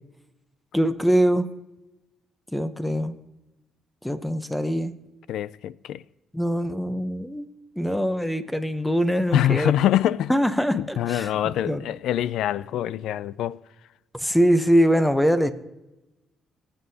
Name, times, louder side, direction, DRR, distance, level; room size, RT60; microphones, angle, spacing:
voice 1, 0.7-1.5 2.5-3.1 4.0-4.9 6.3-7.5 7.8-9.7 10.3-11.8 14.1-15.5, equal, 5° left, 0.8 m, -23 dB
voice 2, 5.3-6.0 9.3-10.3 10.7-13.6, left 11 dB, 80° left, 0.3 m, -24 dB
20.5 x 7.7 x 2.8 m
cardioid pair, 90°, 0 cm